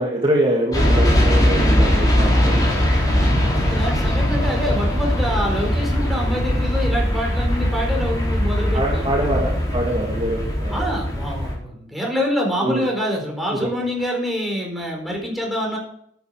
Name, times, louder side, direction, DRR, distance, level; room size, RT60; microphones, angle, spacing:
voice 1, 0.0-2.7 8.7-11.0 12.6-12.8, right 1 dB, 30° right, -2 dB, 2.1 m, -24 dB
sound 1, 0.7-11.5, equal, 20° left, 4.3 m, -20 dB
voice 2, 3.6-9.1 10.7-15.8, equal, ahead, -1 dB, 4.1 m, -26 dB
11.5 x 9.4 x 4.9 m, 0.67 s
head